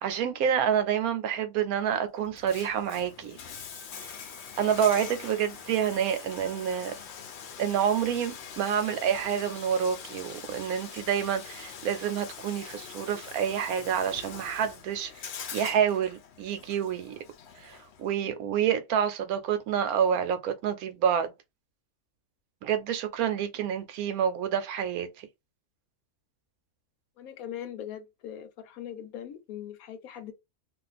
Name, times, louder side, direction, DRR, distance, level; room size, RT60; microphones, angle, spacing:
voice 1, 0.0-3.4 4.0-4.1 4.6-6.9 7.6-15.1 15.5-17.1 17.6-21.3 22.6-25.3, right 8 dB, 85° right, 1.1 m, -28 dB
Bathtub (filling or washing), 2.2-18.2, left 7 dB, 60° left, 0.8 m, -44 dB
voice 2, 27.2-30.3, left 10 dB, 80° left, 1.1 m, -40 dB
2.5 x 2.4 x 4.0 m
omnidirectional pair, 1.5 m